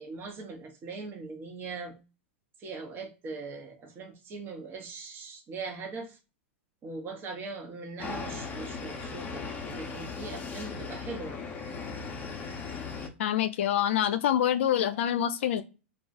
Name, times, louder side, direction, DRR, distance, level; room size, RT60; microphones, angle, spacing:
voice 1, 0.0-2.0 2.6-6.2 6.8-11.4, right 4 dB, 30° right, 1.0 m, -40 dB
sound 1, 8.0-13.1, left 5 dB, 25° left, 0.7 m, -38 dB
voice 2, 13.2-15.6, left 10 dB, 70° left, 0.5 m, -26 dB
2.4 x 2.4 x 3.9 m
hypercardioid pair, 115°, 7 cm